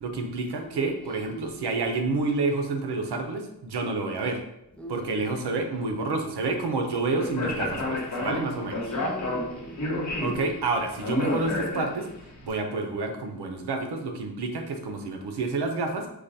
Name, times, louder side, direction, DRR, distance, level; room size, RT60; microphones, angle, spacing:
voice 1, 0.0-4.4 4.9-8.8 10.2-12.1 12.4-16.1, right 3 dB, 75° right, 4 dB, 0.6 m, -29 dB
voice 2, 1.1-1.5 4.8-5.3 8.3-8.4 8.8-9.8, left 1 dB, 5° left, 1 dB, 0.3 m, -41 dB
Speech, 7.2-12.2, left 1 dB, 45° left, 0.9 m, -30 dB
4.7 x 2.2 x 2.7 m, 0.83 s
wide cardioid pair, 100°, 40 cm